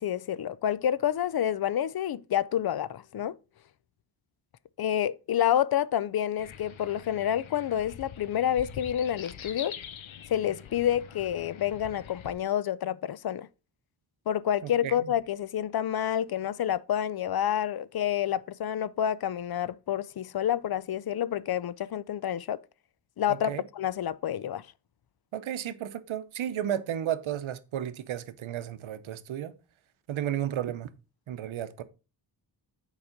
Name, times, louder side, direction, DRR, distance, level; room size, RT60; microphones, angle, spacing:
voice 1, 0.0-3.4 4.8-9.8 10.3-13.5 14.3-22.6 23.2-24.7, left 10 dB, 55° left, 0.5 m, -28 dB
sound 1, 6.4-12.3, left 8 dB, 85° left, 0.9 m, -44 dB
voice 2, 14.6-14.9 23.3-23.6 25.3-29.5 30.1-30.9 31.3-31.8, right 10 dB, 90° right, 0.8 m, -33 dB
7.1 x 4.9 x 5.0 m
cardioid pair, 80°, 46 cm